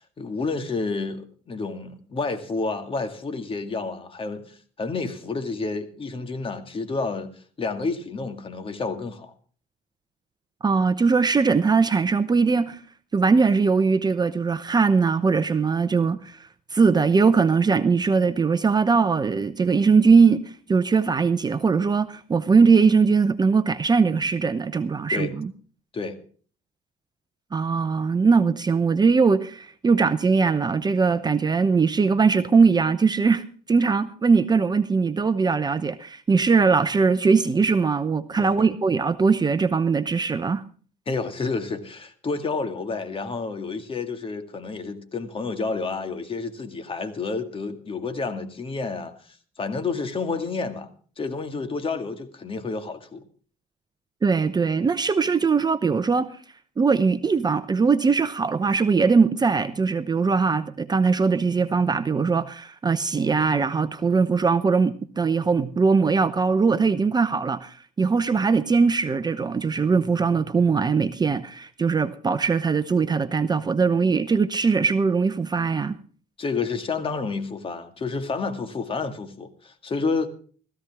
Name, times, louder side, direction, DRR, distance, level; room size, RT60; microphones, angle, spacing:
voice 1, 0.0-7.3 7.6-9.3 25.1-25.3 25.9-26.2 38.4-38.7 41.1-50.9 51.2-53.2 76.4-80.3, left 4 dB, 30° left, 2.2 m, -30 dB
voice 2, 10.6-12.8 13.1-16.4 16.7-25.5 27.5-40.6 54.2-56.3 56.8-76.0, right 5 dB, 25° right, 0.8 m, -21 dB
17.0 x 14.5 x 3.5 m
cardioid pair, 110°, 17 cm